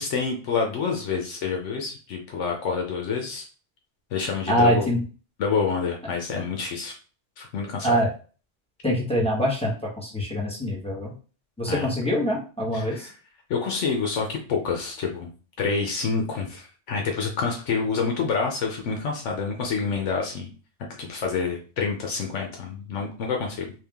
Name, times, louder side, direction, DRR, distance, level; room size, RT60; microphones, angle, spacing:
voice 1, 0.0-3.4 4.1-4.9 5.4-6.9 7.4-8.0 11.7-11.9 12.7-13.1 13.5-15.3 15.6-20.5 21.0-23.7, left 5 dB, 75° left, 1 dB, 1.1 m, -27 dB
voice 2, 4.5-5.0 7.8-8.1 8.8-11.1 11.6-13.1, equal, 5° left, -4 dB, 1.0 m, -24 dB
3.4 x 2.5 x 3.5 m, 0.37 s
omnidirectional pair, 1.2 m